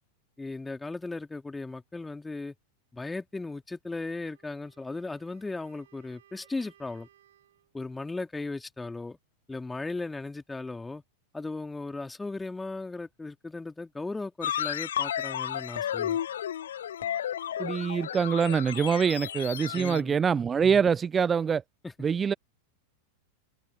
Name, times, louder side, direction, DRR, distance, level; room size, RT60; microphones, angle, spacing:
voice 1, 0.4-2.5 2.9-7.1 7.7-9.2 9.5-11.0 11.3-16.2 19.7-20.2 21.8-21.9, left 3 dB, 10° left, 3.4 m, -37 dB
Wind instrument woodwind instrument, 4.2-7.7, right 12 dB, 60° right, 4.9 m, -62 dB
sound 1, 14.4-20.0, left 10 dB, 65° left, 0.4 m, -33 dB
voice 2, 17.6-21.6 22.0-22.3, right 6 dB, 20° right, 0.6 m, -25 dB
open air
figure-of-eight pair, 90°, 0 cm